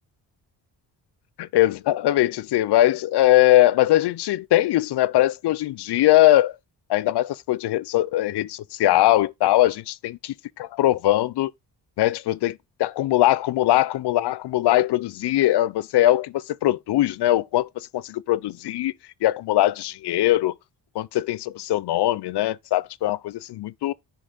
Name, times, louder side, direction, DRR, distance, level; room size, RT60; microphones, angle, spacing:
voice 1, 1.4-6.5 6.9-11.5 12.0-18.9 19.2-20.5 21.0-23.9, left 15 dB, 70° left, 0.5 m, -21 dB
10.0 x 5.1 x 3.9 m
wide cardioid pair, 160°, 41 cm